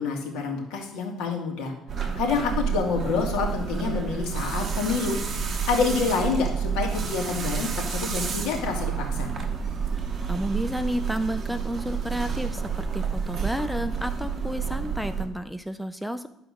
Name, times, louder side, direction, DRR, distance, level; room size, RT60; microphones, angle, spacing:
voice 1, 0.0-1.7 2.2-5.2 5.5-9.3, left 5 dB, 80° left, 1 dB, 2.3 m, -27 dB
sound 1, 1.9-15.3, right 6 dB, 30° right, 1.1 m, -29 dB
voice 2, 10.3-16.3, equal, ahead, 9 dB, 0.4 m, -31 dB
11.5 x 4.9 x 6.3 m, 0.82 s
cardioid pair, 150°, 0 cm